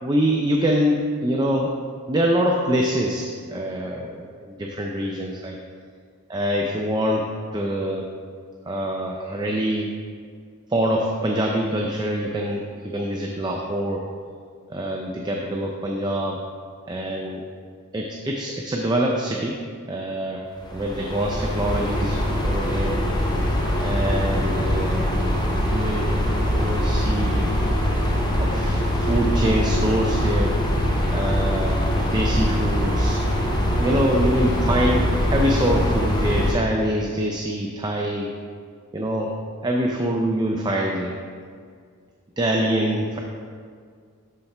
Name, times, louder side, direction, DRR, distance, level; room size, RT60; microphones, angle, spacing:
voice 1, 0.0-1.7 2.1-5.6 6.3-8.0 8.7-9.9 10.7-14.0 14.7-16.4 16.9-17.4 17.9-19.6 19.9-20.5 20.7-23.0 23.8-25.1 25.6-26.2 26.6-27.5 28.4-30.5 31.1-33.2 33.8-38.3 38.9-39.3 39.6-41.2 42.4-43.2, equal, 20° right, 0 dB, 0.4 m, -25 dB
sound 1, 20.6-36.5, left 1 dB, 20° left, 0.7 m, -22 dB
11.5 x 4.2 x 3.3 m, 2.1 s
head